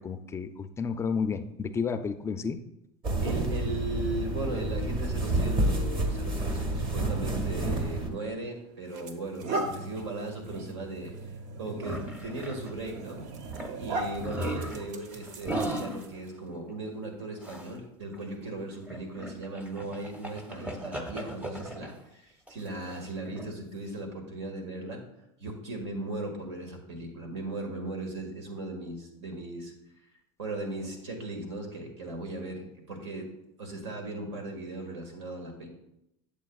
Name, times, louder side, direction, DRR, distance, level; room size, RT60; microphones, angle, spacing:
voice 1, 0.0-2.6, left 5 dB, 20° left, 9 dB, 0.3 m, -31 dB
sound 1, 3.0-8.1, right 2 dB, 35° right, 1.3 m, -29 dB
voice 2, 3.2-11.1 11.6-13.2 13.8-25.0 25.4-29.7 30.4-33.3 33.6-35.7, right 2 dB, 90° right, 3 dB, 1.8 m, -37 dB
sound 2, 8.1-8.3 8.9-16.3, right 2 dB, 60° right, 0.9 m, -38 dB
sound 3, 11.8-12.8 13.2-13.3 13.5-13.8 14.1-16.2 17.4-17.7 18.1-18.2 18.6-22.0 22.5-23.5, right 1 dB, 10° right, 0.7 m, -37 dB
8.3 x 7.4 x 2.3 m, 0.85 s
supercardioid pair, 120°, 14 cm